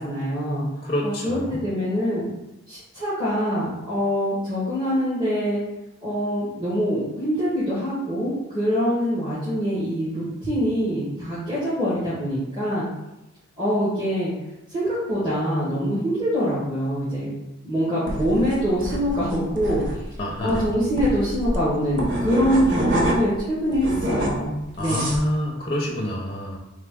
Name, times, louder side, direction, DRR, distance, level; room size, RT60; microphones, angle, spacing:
voice 1, 0.0-0.6 1.0-2.3 2.7-5.6 6.0-12.8 13.6-14.3 14.7-17.3 17.6-19.8 20.4-25.1, equal, 20° right, -11 dB, 1.1 m, -24 dB
voice 2, 0.8-1.6 20.2-20.7 24.8-26.6, left 1 dB, 25° left, -2 dB, 0.5 m, -27 dB
sound 1, 18.1-23.4 23.7-25.3, right 1 dB, 55° right, 0.7 m, -27 dB
3.4 x 3.2 x 3.6 m, 0.97 s
head